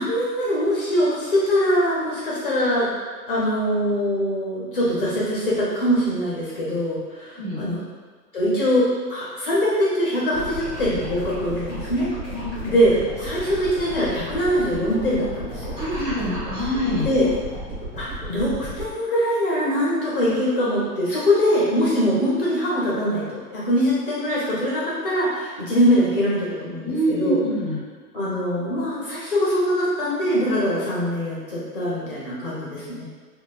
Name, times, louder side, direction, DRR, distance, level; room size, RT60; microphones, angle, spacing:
voice 1, 0.0-2.9 3.3-7.8 8.3-8.8 9.1-12.1 12.6-15.8 17.0-17.3 18.0-27.4 28.1-33.0, equal, 35° left, -7 dB, 0.5 m, -22 dB
sound 1, 10.3-18.9, right 1 dB, 5° left, 1.3 m, -34 dB
voice 2, 12.3-12.7 15.8-17.1 26.8-27.8, equal, 30° right, -8 dB, 0.5 m, -25 dB
3.1 x 2.2 x 2.3 m, 1.5 s
hypercardioid pair, 145°, 49 cm